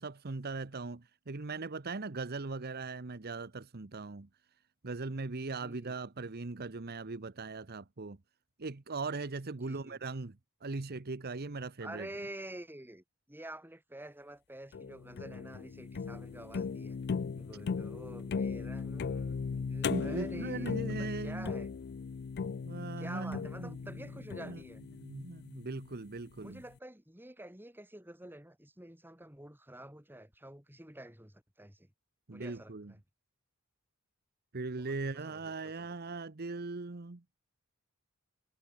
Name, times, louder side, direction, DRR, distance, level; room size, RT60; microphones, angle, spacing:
voice 1, 0.0-4.3 4.8-8.2 8.6-10.4 10.6-12.1 19.9-21.5 22.6-23.8 24.4-24.6 25.0-26.6 32.3-32.9 34.5-37.2, right 3 dB, 45° right, 1.0 m, -39 dB
voice 2, 5.4-6.0 9.5-10.0 11.8-17.0 17.4-21.7 23.0-24.8 26.4-31.9 32.3-33.0 34.8-35.9, right 1 dB, 10° right, 4.6 m, -48 dB
sound 1, 14.7-25.9, left 5 dB, 50° left, 0.4 m, -38 dB
head